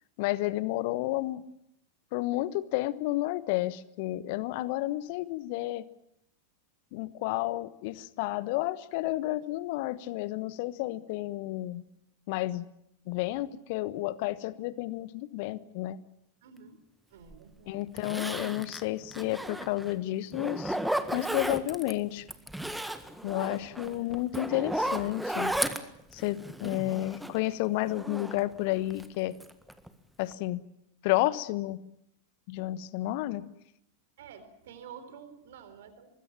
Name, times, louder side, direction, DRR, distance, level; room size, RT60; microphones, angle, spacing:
voice 1, 0.2-1.4 2.1-5.8 6.9-11.8 12.3-12.7 13.1-16.0 17.7-20.8 21.1-22.2 23.2-25.5 26.1-29.3 30.2-30.6 31.0-31.8 32.5-33.4, left 17 dB, 50° left, 16 dB, 1.2 m, -31 dB
voice 2, 16.4-16.8 17.1-17.8 23.8-24.0 34.2-36.1, right 7 dB, 55° right, 11 dB, 3.8 m, -49 dB
Zipper (clothing), 17.3-17.4 18.0-19.9 20.3-21.9 22.3-27.5 27.8-29.1 29.4-29.9 30.2-30.3, right 1 dB, ahead, 1.7 m, -34 dB
24.5 x 21.0 x 7.4 m, 0.77 s
figure-of-eight pair, 90°, 0 cm